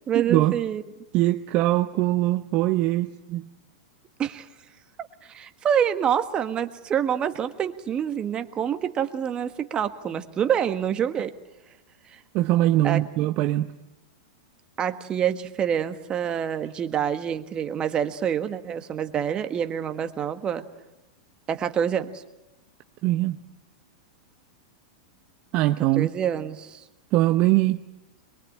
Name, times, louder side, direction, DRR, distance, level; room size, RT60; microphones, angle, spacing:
voice 1, 0.1-0.8 4.2-4.5 5.2-11.3 12.1-12.2 12.8-13.0 14.8-20.6 21.5-22.1 26.0-26.8, right 8 dB, 30° right, 9 dB, 1.5 m, -26 dB
voice 2, 1.1-3.5 12.3-13.7 23.0-23.4 25.5-26.1 27.1-27.8, right 16 dB, 45° right, 8 dB, 0.8 m, -22 dB
23.5 x 22.5 x 8.7 m, 0.99 s
hypercardioid pair, 105°, 3 cm